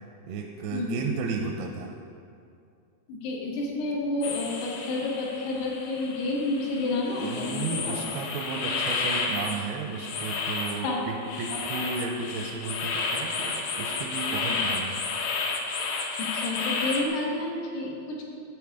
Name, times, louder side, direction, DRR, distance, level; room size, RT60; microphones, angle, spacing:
voice 1, 0.2-1.9 7.1-15.0, right 5 dB, 85° right, 2 dB, 2.5 m, -33 dB
voice 2, 3.1-8.0 10.8-11.0 16.2-18.3, left 2 dB, 90° left, -2 dB, 3.3 m, -30 dB
sound 1, 4.2-17.1, left 4 dB, 75° left, 2.3 m, -32 dB
9.1 x 8.1 x 3.5 m, 2.5 s
omnidirectional pair, 4.6 m